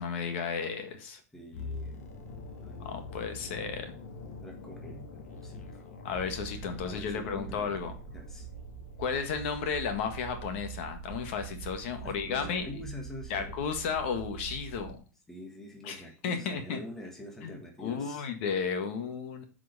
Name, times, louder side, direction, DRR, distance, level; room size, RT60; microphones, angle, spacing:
voice 1, 0.0-1.2 2.8-3.9 6.0-7.9 9.0-12.7 13.3-15.0 15.8-16.8 17.4-19.4, left 6 dB, 45° left, 7 dB, 1.6 m, -33 dB
voice 2, 1.3-2.0 2.6-2.9 4.4-5.8 6.8-7.7 8.1-8.5 12.0-13.5 15.3-18.3, left 1 dB, 5° left, 0 dB, 1.3 m, -45 dB
sound 1, 1.5-11.5 11.8-12.0, left 3 dB, 65° left, 1.9 m, -45 dB
sound 2, 6.1-15.0, right 8 dB, 45° right, 1.9 m, -44 dB
8.1 x 5.0 x 6.7 m, 0.37 s
supercardioid pair, 175°, 9 cm